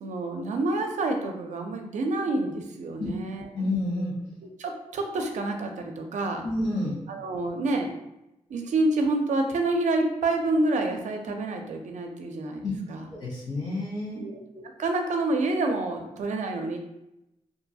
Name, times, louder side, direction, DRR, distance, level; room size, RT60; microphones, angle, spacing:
voice 1, 0.0-3.7 4.4-6.4 7.1-7.9 8.5-13.1 14.2-16.8, right 2 dB, 80° right, 4 dB, 0.4 m, -28 dB
voice 2, 3.5-4.1 6.4-6.9 12.6-12.7 13.1-14.2, left 2 dB, 60° left, -6 dB, 0.9 m, -29 dB
2.7 x 2.3 x 2.6 m, 0.90 s
cardioid pair, 90°, 12 cm